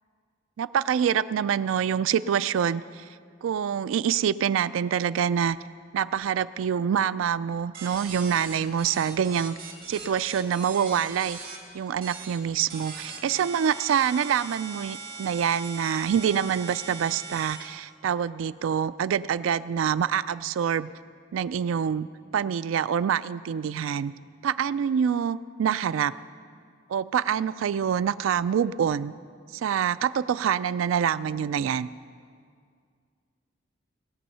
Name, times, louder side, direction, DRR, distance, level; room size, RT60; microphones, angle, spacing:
voice 1, 0.6-3.0 3.4-5.6 5.9-9.6 9.9-11.4 11.7-20.9 21.3-22.1 22.3-24.1 24.4-26.1 26.9-29.1 29.5-31.9, right 8 dB, 80° right, 16 dB, 0.3 m, -26 dB
sound 1, 7.7-11.6 12.0-12.4 12.7-17.6, right 4 dB, 50° right, 2.6 m, -40 dB
19.0 x 7.8 x 5.5 m, 2.1 s
head